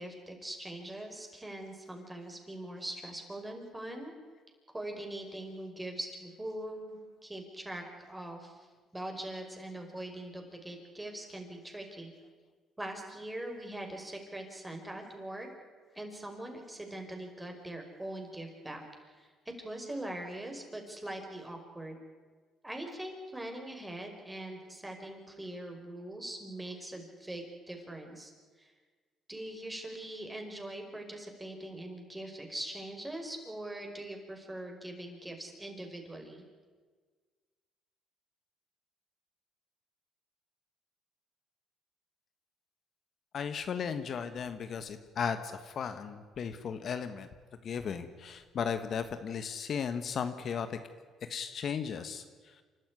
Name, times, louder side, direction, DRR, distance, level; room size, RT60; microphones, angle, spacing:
voice 1, 0.0-4.1 4.7-8.7 8.9-12.1 12.8-15.5 16.0-21.9 22.6-28.3 28.6-28.7 29.3-36.4, right 1 dB, 15° right, 3 dB, 5.3 m, -42 dB
voice 2, 43.3-47.3 47.6-50.8 51.3-52.2, left 7 dB, 55° left, 9 dB, 1.3 m, -35 dB
28.0 x 12.5 x 9.7 m, 1.5 s
cardioid pair, 80°, 0 cm